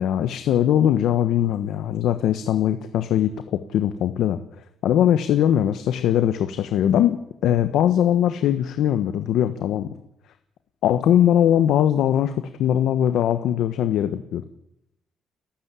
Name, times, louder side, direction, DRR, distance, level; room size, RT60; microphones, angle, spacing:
voice 1, 0.0-4.4 4.8-9.9 10.8-14.4, left 10 dB, 75° left, 9 dB, 1.2 m, -21 dB
30.0 x 12.0 x 8.4 m, 0.82 s
cardioid pair, 160°, 0 cm